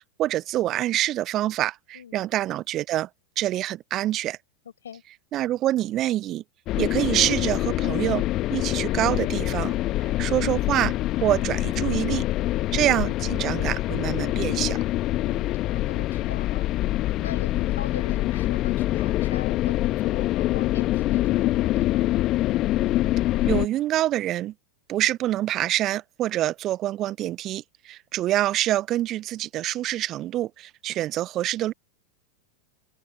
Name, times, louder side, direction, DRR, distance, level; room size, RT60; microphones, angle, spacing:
voice 1, 0.2-3.1 3.4-4.4 5.3-6.4 6.8-8.2 8.5-9.7 10.0-10.9 11.2-12.2 12.7-14.8 23.5-24.5 24.9-31.7, right 14 dB, 35° right, 1.5 m, -26 dB
sound 1, 6.7-23.6, left 16 dB, 35° left, 1.9 m, -25 dB
voice 2, 15.2-16.7 17.2-22.1, left 8 dB, 65° left, 6.3 m, -41 dB
open air
figure-of-eight pair, 90°, 0 cm